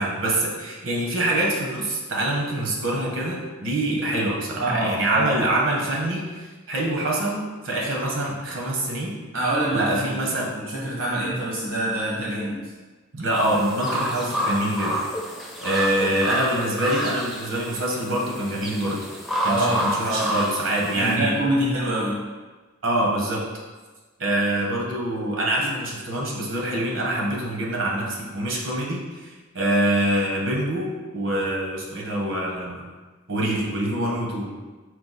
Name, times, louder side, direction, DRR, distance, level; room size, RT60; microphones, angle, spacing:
voice 1, 0.0-9.2 9.7-10.5 13.1-15.0 15.6-19.1 19.4-21.3 22.8-23.5 24.2-32.9 33.3-34.5, right 1 dB, 70° right, -2 dB, 0.9 m, -25 dB
voice 2, 4.6-5.4 9.3-10.2 10.5-12.6 16.1-16.2 19.4-20.3 20.9-22.2 25.6-25.7, right 1 dB, 85° right, -6 dB, 1.2 m, -25 dB
sound 1, 13.3-21.2, equal, ahead, 0.4 m, -29 dB
4.6 x 2.3 x 3.9 m, 1.3 s
head